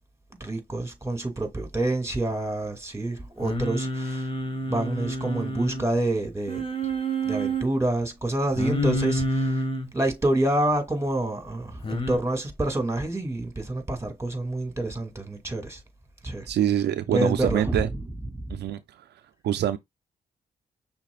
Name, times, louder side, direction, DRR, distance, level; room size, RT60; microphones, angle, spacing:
voice 1, 0.4-4.3 4.6-6.6 7.2-9.6 9.9-15.8 16.2-16.5 17.1-18.0 18.3-18.6, right 1 dB, 15° right, 2.3 m, -27 dB
Singing, 3.4-5.9 6.5-7.7 8.6-9.9 11.8-12.2, right 1 dB, 30° left, 1.6 m, -28 dB
voice 2, 16.5-17.9 18.5-18.8 19.4-19.8, right 11 dB, 75° right, 0.4 m, -24 dB
5.9 x 3.8 x 2.4 m
supercardioid pair, 50°, 17 cm